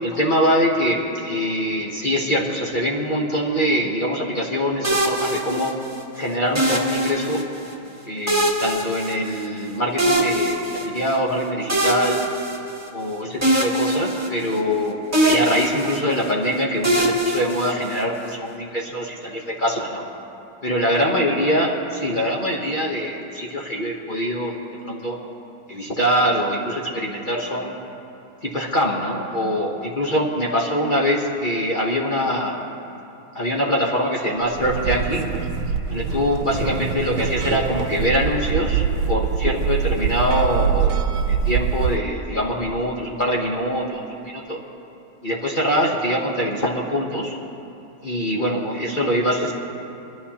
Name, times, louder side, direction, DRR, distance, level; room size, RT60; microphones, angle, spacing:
voice 1, 0.0-5.7 6.1-7.4 8.0-12.2 12.9-20.0 20.6-24.5 24.8-25.2 25.7-27.7 28.4-32.6 33.3-35.2 35.9-41.0 41.3-44.6 45.2-47.4 48.0-49.5, equal, 35° left, -2 dB, 0.8 m, -23 dB
sound 1, 4.8-6.0 6.6-7.7 8.3-9.6 10.0-11.2 11.7-13.1 13.4-14.8 15.1-16.3 16.8-18.2, right 1 dB, 10° right, 1.0 m, -23 dB
sound 2, 34.5-42.0, right 7 dB, 85° right, 1.4 m, -24 dB
22.5 x 12.5 x 2.8 m, 2.8 s
omnidirectional pair, 2.1 m